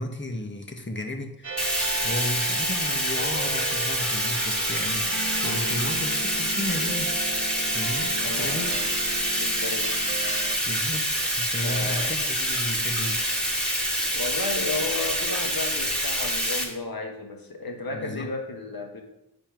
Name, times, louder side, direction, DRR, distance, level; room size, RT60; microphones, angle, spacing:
voice 1, 0.0-1.7 2.0-7.2 7.6-8.7 10.6-13.2 17.9-18.3, left 1 dB, 30° left, 4 dB, 1.5 m, -34 dB
sound 1, 1.4-10.6, right 4 dB, 50° right, 1.1 m, -36 dB
Bathtub (filling or washing), 1.6-16.6, equal, ahead, 2.5 m, -26 dB
voice 2, 8.2-8.9 9.4-10.0 11.6-12.2 14.1-19.0, left 3 dB, 70° left, 2 dB, 1.6 m, -33 dB
9.2 x 4.4 x 5.9 m, 0.85 s
wide cardioid pair, 60°, 37 cm